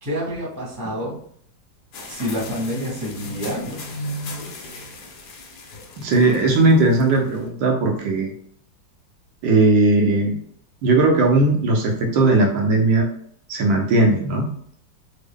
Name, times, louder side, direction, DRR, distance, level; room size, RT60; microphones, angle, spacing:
voice 1, 0.0-1.2 2.1-3.8, equal, 15° right, -6 dB, 0.9 m, -28 dB
sound 1, 1.9-7.5, left 1 dB, 65° left, 1.1 m, -36 dB
voice 2, 6.0-8.3 9.4-10.4 10.8-13.1 13.5-14.5, right 2 dB, 75° right, 1 dB, 1.3 m, -18 dB
3.5 x 2.0 x 3.5 m, 0.64 s
omnidirectional pair, 2.2 m